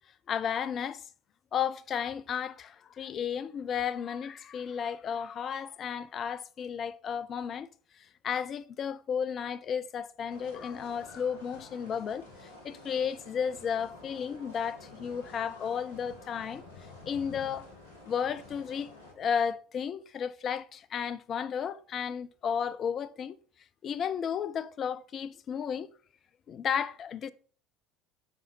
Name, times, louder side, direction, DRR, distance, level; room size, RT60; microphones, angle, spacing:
voice 1, 0.3-1.0 1.5-7.7 8.0-16.6 17.0-17.7 18.0-18.9 19.2-23.4 23.8-25.9 26.5-27.3, left 7 dB, 40° left, 0.6 m, -33 dB
sound 1, 10.3-19.1, left 2 dB, 70° left, 2.0 m, -50 dB
5.9 x 5.6 x 5.4 m
figure-of-eight pair, 65°, 0 cm